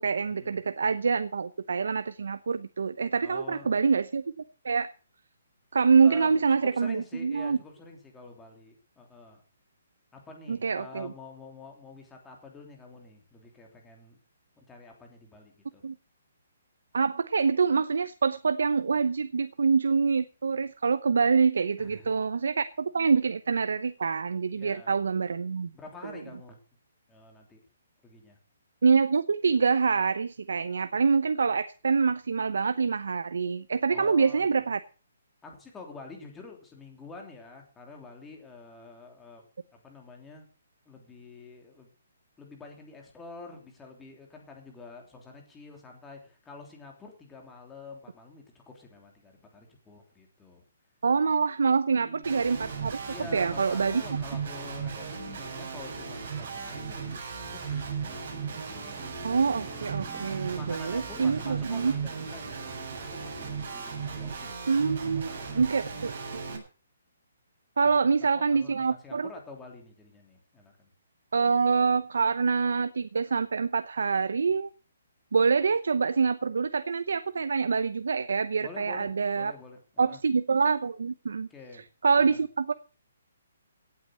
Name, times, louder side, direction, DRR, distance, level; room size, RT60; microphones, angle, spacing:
voice 1, 0.0-4.3 4.6-4.9 5.7-7.6 10.5-11.1 15.8-15.9 16.9-25.7 28.8-34.8 51.0-53.0 53.3-54.0 59.2-61.9 64.7-66.6 67.8-69.3 71.3-74.7 75.3-79.5 80.0-81.5 82.0-82.7, right 5 dB, 80° right, 13 dB, 0.8 m, -26 dB
voice 2, 3.2-3.7 6.0-9.4 10.1-14.2 14.6-15.8 21.8-22.1 24.6-24.9 25.7-26.6 27.1-27.6 28.0-28.4 33.9-34.5 35.4-39.4 39.7-40.5 40.8-41.9 42.4-50.6 51.9-52.4 53.1-59.0 60.3-64.6 65.1-66.0 67.8-70.9 78.6-80.2 81.5-81.8 82.2-82.4, left 3 dB, 10° left, 1 dB, 3.2 m, -48 dB
Guitar, 52.2-66.6, right 5 dB, 45° right, 7.7 m, -36 dB
sound 1, 57.4-64.5, right 2 dB, 15° right, 1.6 m, -51 dB
17.5 x 8.6 x 6.4 m, 0.36 s
hypercardioid pair, 165°, 0 cm